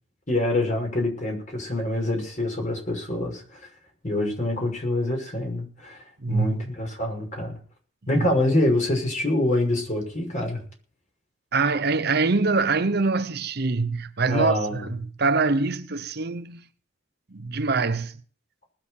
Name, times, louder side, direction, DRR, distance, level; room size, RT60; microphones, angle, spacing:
voice 1, 0.3-3.6 4.0-6.0 6.3-7.6 8.1-10.6 14.3-14.9, left 1 dB, 40° left, 6.1 m, -25 dB
voice 2, 6.2-6.7 8.1-8.3 11.5-16.6 17.3-18.1, right 3 dB, 55° right, 0.9 m, -24 dB
20.0 x 7.7 x 6.6 m
head